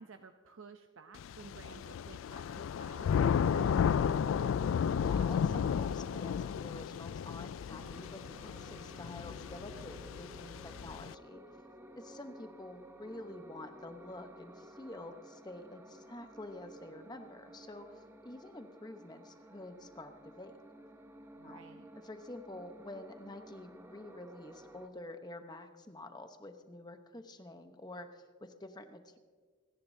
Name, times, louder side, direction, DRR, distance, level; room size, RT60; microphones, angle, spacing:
voice 1, 0.0-3.7 21.3-21.9, right 4 dB, 80° right, 6 dB, 0.6 m, -54 dB
Thunder / Rain, 1.2-11.1, left 7 dB, 80° left, 0.3 m, -33 dB
voice 2, 4.8-11.4 11.9-20.6 21.4-21.6 22.0-29.2, left 1 dB, 20° left, 7 dB, 0.9 m, -48 dB
Wind instrument woodwind instrument, 4.9-10.9, right 1 dB, 55° left, 2.4 m, -58 dB
sound 1, 7.7-24.9, right 1 dB, 10° right, 0.7 m, -54 dB
28.5 x 10.5 x 2.7 m, 1.5 s
head